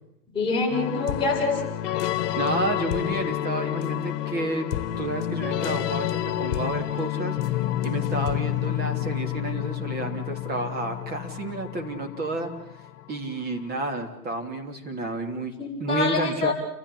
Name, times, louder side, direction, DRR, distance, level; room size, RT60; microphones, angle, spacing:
voice 1, 0.3-1.6 15.6-16.5, left 3 dB, 10° left, -4 dB, 7.0 m, -25 dB
sound 1, 0.7-13.3, left 13 dB, 45° left, 2.1 m, -29 dB
voice 2, 2.4-4.6 5.0-7.4 7.8-12.5 13.1-15.5 15.8-16.5, right 2 dB, 20° right, 4 dB, 3.0 m, -30 dB
29.5 x 15.0 x 8.5 m, 0.83 s
hypercardioid pair, 140°, 49 cm